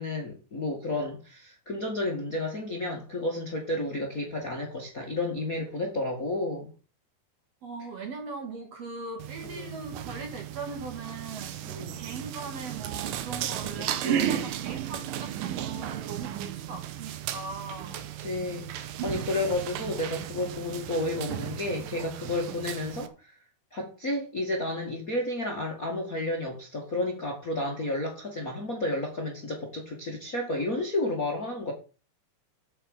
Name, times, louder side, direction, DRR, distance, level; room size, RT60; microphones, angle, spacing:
voice 1, 0.0-6.7 9.5-9.8 11.6-12.0 14.0-14.5 18.2-23.3 23.7-31.7, left 2 dB, 30° left, 1.6 m, -31 dB
voice 2, 7.6-18.0, right 4 dB, 50° right, 2.5 m, -40 dB
sound 1, 9.2-23.1, right 11 dB, 70° right, 2.4 m, -35 dB
8.8 x 6.5 x 7.2 m
omnidirectional pair, 4.4 m